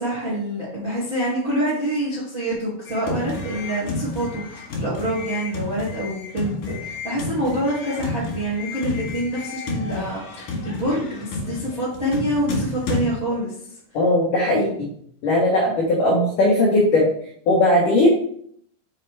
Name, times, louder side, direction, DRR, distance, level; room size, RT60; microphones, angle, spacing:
voice 1, 0.0-13.5, right 1 dB, 70° right, -8 dB, 0.7 m, -26 dB
sound 1, 2.9-13.0, left 2 dB, 55° left, 2.6 m, -31 dB
voice 2, 13.9-14.7 15.2-17.1 17.5-18.1, left 1 dB, 85° left, -4 dB, 1.8 m, -18 dB
6.4 x 6.0 x 3.3 m, 0.64 s
omnidirectional pair, 5.9 m